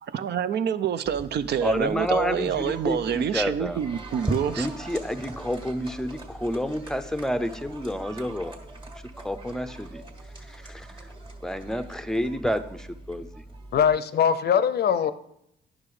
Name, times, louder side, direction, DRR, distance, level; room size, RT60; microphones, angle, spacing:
voice 1, 0.0-4.7, right 8 dB, 60° right, 0.5 m, -27 dB
sound 1, 1.1-14.0, right 1 dB, 25° right, 1.7 m, -40 dB
voice 2, 1.6-3.8 4.6-8.6 9.2-10.0 10.4-11.1 11.4-13.4, equal, 5° left, 0.6 m, -29 dB
voice 3, 13.7-15.1, left 8 dB, 55° left, 0.6 m, -21 dB
9.6 x 6.2 x 4.8 m
cardioid pair, 90°, 20 cm